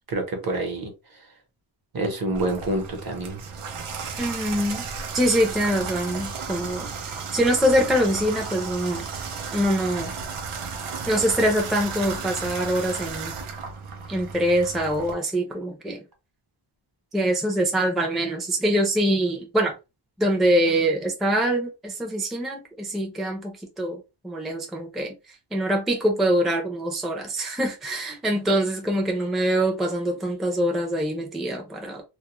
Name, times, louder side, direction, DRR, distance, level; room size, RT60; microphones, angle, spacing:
voice 1, 0.1-0.9 1.9-3.4, right 2 dB, 45° right, 0.9 m, -27 dB
Water tap faucet / Bathtub (filling or washing), 2.3-15.1, right 5 dB, 85° right, 0.7 m, -34 dB
voice 2, 4.2-4.9 5.1-6.9 7.3-9.1 9.5-10.1 11.1-13.3 14.1-16.0 17.1-19.7 20.2-32.0, right 1 dB, ahead, 0.5 m, -24 dB
2.4 x 2.0 x 2.9 m
wide cardioid pair, 90°, 49 cm